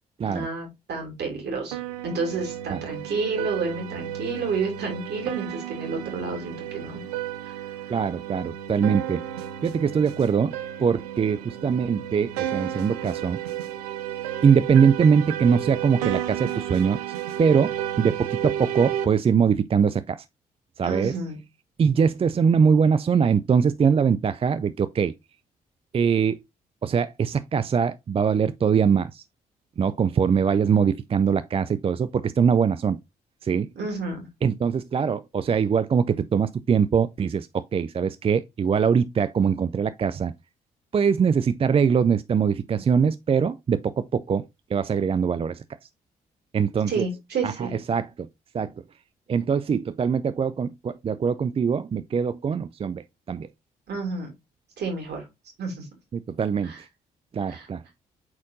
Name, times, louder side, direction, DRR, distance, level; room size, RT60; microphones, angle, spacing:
voice 1, 0.3-7.0 7.4-7.6 20.8-21.4 33.7-34.3 46.9-47.7 53.9-54.3 54.8-55.3 55.6-55.9 56.6-56.8 57.5-57.7, right 4 dB, 60° right, 2.8 m, -30 dB
sound 1, 1.7-19.1, right 11 dB, 85° right, 0.6 m, -32 dB
voice 2, 7.9-9.2 9.6-10.5 10.8-13.4 14.4-17.0 17.4-20.2 20.8-21.1 21.8-25.1 25.9-26.4 26.8-29.2 29.8-33.0 33.4-33.7 34.4-40.3 40.9-44.4 44.7-45.6 46.5-47.0 47.4-48.3 48.5-48.7 49.3-53.5 56.1-56.9 57.3-57.8, right 6 dB, 30° right, 0.4 m, -22 dB
8.5 x 4.2 x 2.6 m
hypercardioid pair, 45°, 20 cm